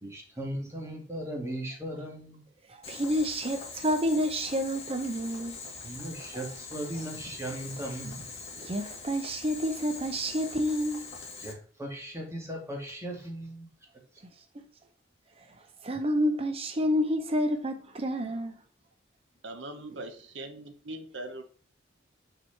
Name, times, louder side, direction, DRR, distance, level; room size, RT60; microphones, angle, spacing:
voice 1, 0.0-2.4 5.8-8.3 11.4-13.7, right 1 dB, 15° right, 2.1 m, -38 dB
voice 2, 2.7-5.6 6.3-6.4 8.6-11.1 15.8-18.5, equal, 30° right, 0.7 m, -29 dB
Boiling, 2.8-11.5, left 4 dB, 35° left, 1.8 m, -43 dB
voice 3, 19.4-21.4, right 2 dB, 70° right, 0.9 m, -41 dB
6.3 x 4.8 x 4.5 m
head